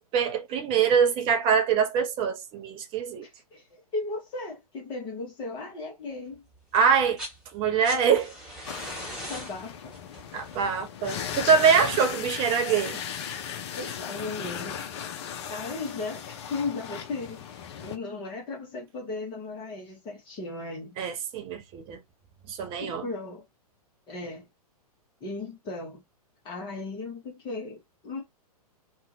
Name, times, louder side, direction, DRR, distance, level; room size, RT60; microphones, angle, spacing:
voice 1, 0.1-3.3 6.7-7.2 7.5-8.3 10.3-13.0 21.0-22.0 22.5-23.0, right 6 dB, 25° right, 0.7 m, -24 dB
voice 2, 3.2-6.4 9.3-9.9 13.8-14.8 15.5-21.0 22.8-23.4 24.1-24.5 25.2-26.0 26.4-28.2, left 3 dB, 25° left, 1.0 m, -36 dB
sound 1, 6.9-7.4 7.7-12.5 13.8-13.9, equal, 5° right, 1.4 m, -41 dB
sound 2, 8.6-18.0, left 8 dB, 45° left, 0.6 m, -37 dB
2.8 x 2.3 x 2.7 m
figure-of-eight pair, 105°, 20 cm